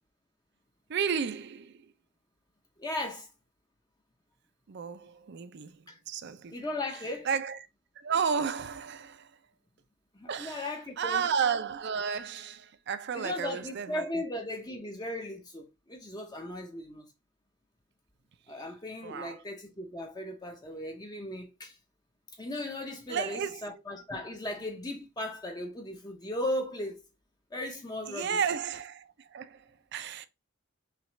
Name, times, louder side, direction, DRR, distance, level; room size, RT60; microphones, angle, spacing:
voice 1, 0.9-1.9 4.7-6.6 7.2-7.6 8.0-9.3 10.3-14.1 19.0-19.4 23.1-23.6 28.1-30.3, right 6 dB, 50° right, 0.4 m, -33 dB
voice 2, 2.8-3.3 5.9-6.0 6.5-7.3 10.1-11.2 13.1-17.1 18.5-21.8 22.4-27.0 27.5-28.4, left 1 dB, 20° left, 0.6 m, -37 dB
5.8 x 2.4 x 3.2 m
head